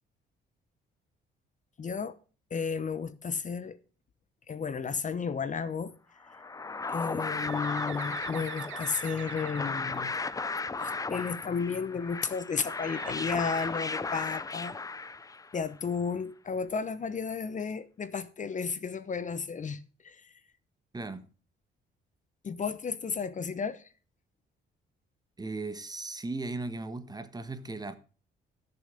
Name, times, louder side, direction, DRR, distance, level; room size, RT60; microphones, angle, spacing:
voice 1, 1.8-2.2 2.5-3.8 4.5-5.9 6.9-10.1 10.8-14.8 15.5-20.3 22.4-23.9, left 5 dB, 40° left, 0.9 m, -33 dB
sound 1, 6.3-15.6, left 4 dB, 15° left, 0.5 m, -35 dB
Bird, 7.4-11.1 12.8-14.6, right 13 dB, 80° right, 0.9 m, -45 dB
voice 2, 25.4-28.0, right 3 dB, 20° right, 1.4 m, -37 dB
13.5 x 6.8 x 5.0 m
cardioid pair, 90°, 20 cm